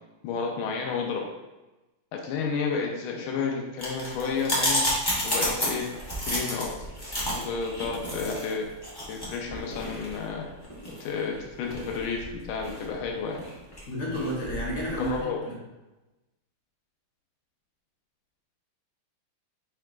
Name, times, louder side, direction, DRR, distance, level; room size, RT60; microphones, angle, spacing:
voice 1, 0.2-1.3 2.1-4.8 5.2-5.9 6.2-6.7 7.3-8.7 9.1-10.4 11.0-13.4 14.9-15.4, left 5 dB, 80° left, 1 dB, 1.5 m, -31 dB
sound 1, 3.8-15.2, equal, 25° left, 0.5 m, -32 dB
voice 2, 13.9-15.5, equal, 50° left, -5 dB, 1.1 m, -31 dB
4.8 x 4.5 x 2.3 m, 1.1 s
omnidirectional pair, 2.3 m